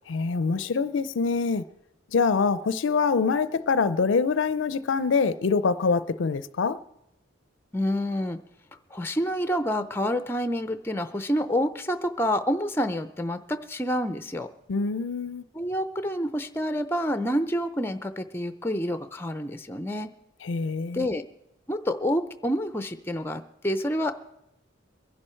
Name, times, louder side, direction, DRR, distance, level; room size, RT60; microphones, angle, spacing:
voice 1, 0.1-1.6 2.1-6.8 14.7-15.4 20.4-21.1, left 5 dB, 70° left, 0.5 m, -25 dB
voice 2, 7.7-8.4 8.9-14.5 15.5-20.1 20.9-21.2 21.7-24.1, equal, 10° left, 0.5 m, -28 dB
22.5 x 11.0 x 4.4 m
head